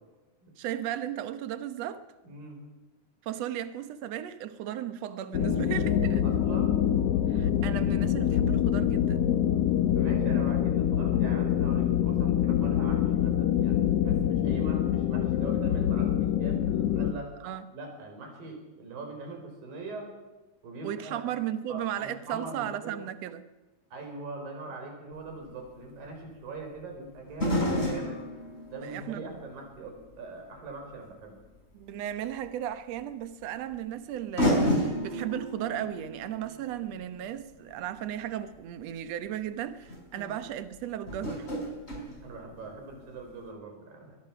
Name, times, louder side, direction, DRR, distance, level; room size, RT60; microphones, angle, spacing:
voice 1, 0.6-2.0 3.2-6.2 7.3-9.2 17.4-17.7 20.8-23.5 28.8-29.4 31.7-41.5, right 11 dB, 60° right, 1.9 m, -35 dB
voice 2, 2.2-2.6 6.2-6.8 10.0-17.3 17.7-20.1 20.6-21.2 21.7-22.9 23.9-28.2 28.7-31.4 40.1-40.3 42.2-44.2, right 3 dB, 80° right, 6.4 m, -42 dB
sound 1, 5.3-17.1, left 10 dB, 75° left, 1.4 m, -25 dB
sound 2, 25.2-25.3 27.3-30.3 30.8-30.9 32.4-32.5 33.7-33.8 34.4-38.5 39.4-39.5 39.8-40.0 41.1-43.0 43.2-43.3, equal, 15° left, 4.6 m, -31 dB
22.5 x 22.0 x 6.0 m
omnidirectional pair, 4.0 m